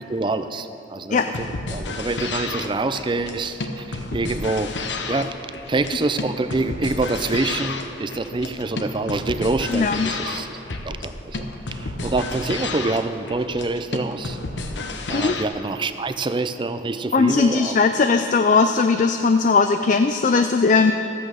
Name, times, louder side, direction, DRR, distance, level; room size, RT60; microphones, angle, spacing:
voice 1, 0.0-4.7 5.1-5.3 5.7-10.6 10.8-14.4 15.1-18.1, right 3 dB, 25° right, 10 dB, 0.5 m, -26 dB
sound 1, 1.2-15.5, left 3 dB, 80° left, 0.9 m, -31 dB
voice 2, 9.7-10.1 15.1-15.3 17.1-20.9, left 4 dB, 45° left, 7 dB, 0.4 m, -18 dB
14.5 x 8.5 x 6.4 m, 3.0 s
head